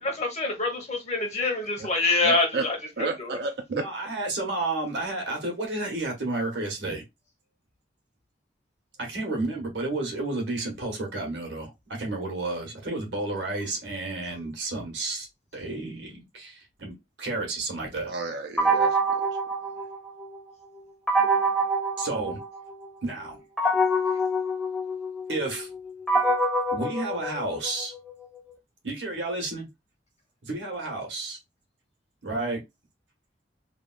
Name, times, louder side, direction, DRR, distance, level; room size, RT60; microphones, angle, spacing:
voice 1, 0.0-3.4, left 3 dB, 40° left, 1.0 m, -26 dB
voice 2, 2.2-2.6 3.0-3.8 18.1-19.2, right 3 dB, 60° right, 0.4 m, -31 dB
voice 3, 3.7-7.0 9.0-15.3 15.5-18.1 22.0-22.4 23.0-23.4 25.3-25.7 26.7-27.9 28.8-29.7 30.4-31.4 32.2-32.6, right 2 dB, 90° right, 1.3 m, -31 dB
sound 1, 18.6-20.4 21.1-22.9 23.6-27.8, right 1 dB, 5° left, 0.7 m, -25 dB
3.3 x 2.3 x 2.3 m
head